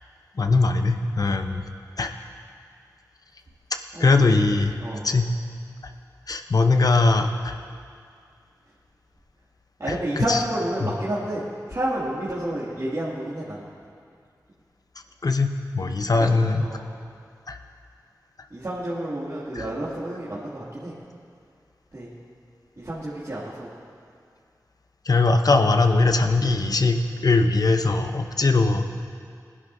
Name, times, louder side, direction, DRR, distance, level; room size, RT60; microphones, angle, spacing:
voice 1, 0.4-1.7 2.0-2.1 4.0-4.8 5.0-5.3 6.3-7.6 9.9-10.4 10.8-10.9 15.2-15.5 15.7-16.6 17.5-17.6 19.5-19.6 25.0-28.8, left 3 dB, 60° left, 6 dB, 0.9 m, -20 dB
voice 2, 3.9-4.5 4.8-5.0 9.8-11.4 11.7-13.6 15.8-16.3 16.6-16.8 18.5-20.9 21.9-22.1 22.8-23.7, right 1 dB, 45° right, -10 dB, 2.5 m, -30 dB
20.0 x 11.0 x 2.7 m, 2.3 s
cardioid pair, 45°, 7 cm